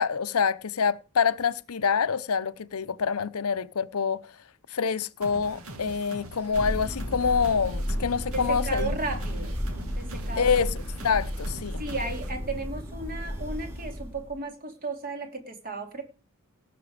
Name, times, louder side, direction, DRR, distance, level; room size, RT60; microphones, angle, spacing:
voice 1, 0.0-4.3 4.7-9.0 10.4-11.8, left 6 dB, 80° left, 0.7 m, -26 dB
sound 1, 5.2-12.3, right 1 dB, 75° right, 2.1 m, -43 dB
Thunder, 6.5-14.4, equal, 10° right, 2.5 m, -33 dB
voice 2, 8.3-9.6 10.0-10.5 11.8-16.0, right 3 dB, 40° right, 2.9 m, -34 dB
18.0 x 6.8 x 4.9 m
head